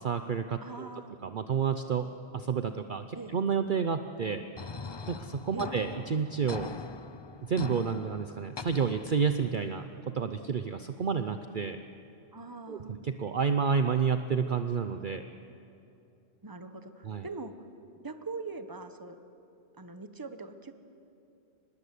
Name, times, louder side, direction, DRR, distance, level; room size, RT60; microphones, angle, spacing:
voice 1, 0.0-0.9 1.2-4.4 5.1-6.7 7.4-11.8 12.7-15.2 17.0-17.2, right 6 dB, 50° right, 8 dB, 0.9 m, -30 dB
voice 2, 0.6-1.2 3.1-3.4 5.5-5.8 12.3-13.0 16.4-17.5 18.0-19.2 19.8-20.7, right 3 dB, 20° right, 9 dB, 1.1 m, -42 dB
sound 1, 4.6-9.6, left 4 dB, 30° left, 0.5 m, -42 dB
25.0 x 20.5 x 8.4 m, 2.7 s
omnidirectional pair, 1.2 m